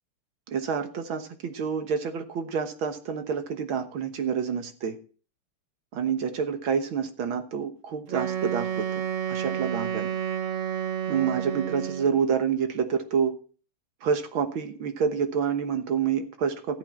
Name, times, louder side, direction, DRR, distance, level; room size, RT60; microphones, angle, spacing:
voice 1, 0.5-5.0 5.9-8.9 9.3-10.1 11.1-13.3 14.0-16.8, right 6 dB, 70° right, 7 dB, 2.0 m, -28 dB
Wind instrument woodwind instrument, 8.1-12.3, right 9 dB, 50° right, 0.9 m, -30 dB
14.0 x 8.4 x 4.3 m, 0.39 s
omnidirectional pair, 2.4 m